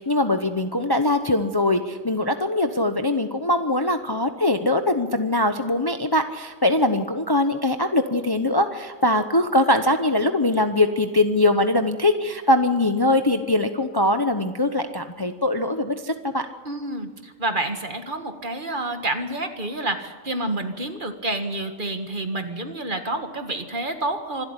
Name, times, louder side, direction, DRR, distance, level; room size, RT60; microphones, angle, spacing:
voice 1, 0.0-16.5, left 1 dB, 20° left, 7 dB, 0.8 m, -22 dB
voice 2, 16.7-24.5, right 2 dB, 40° right, 6 dB, 1.9 m, -29 dB
26.0 x 13.0 x 9.7 m, 1.4 s
omnidirectional pair, 1.4 m